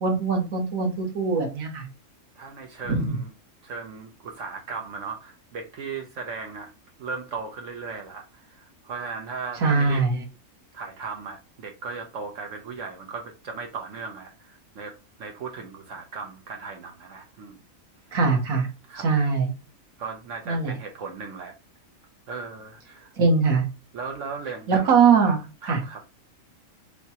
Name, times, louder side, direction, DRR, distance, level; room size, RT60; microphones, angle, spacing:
voice 1, 0.0-1.8 2.9-3.2 9.6-10.2 18.1-18.7 19.0-19.5 20.5-20.7 23.2-23.6 24.7-25.8, right 5 dB, 85° right, 1.6 m, -22 dB
voice 2, 2.4-3.3 3.6-6.7 7.0-10.0 10.7-17.6 18.9-19.1 20.0-21.5 22.3-23.1 23.9-25.0 25.6-26.0, right 5 dB, 65° right, 1.0 m, -37 dB
6.5 x 2.2 x 2.8 m
omnidirectional pair, 1.4 m